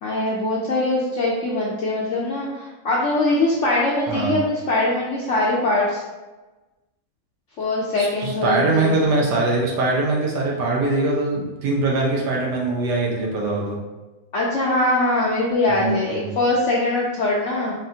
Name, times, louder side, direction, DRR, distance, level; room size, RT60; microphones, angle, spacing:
voice 1, 0.0-6.0 7.6-9.1 14.3-17.7, left 2 dB, 60° left, -4 dB, 0.8 m, -22 dB
voice 2, 4.1-4.4 8.0-13.8 15.7-16.3, right 2 dB, 80° right, -2 dB, 1.5 m, -22 dB
4.0 x 3.7 x 2.7 m, 1.2 s
omnidirectional pair, 1.8 m